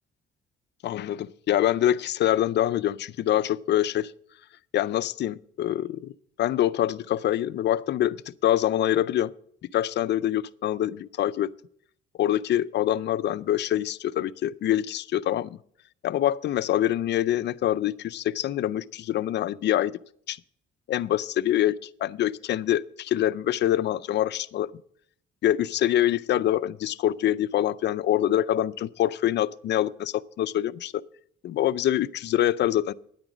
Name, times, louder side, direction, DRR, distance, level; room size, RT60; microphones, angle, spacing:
voice 1, 0.8-4.1 4.7-6.1 6.4-8.2 8.4-9.3 9.7-11.5 12.2-15.6 16.0-19.9 20.3-20.4 20.9-21.7 22.0-24.7 25.4-31.0 31.4-32.9, left 12 dB, 60° left, 18 dB, 0.4 m, -25 dB
9.9 x 8.8 x 6.1 m, 0.65 s
cardioid pair, 90°, 20 cm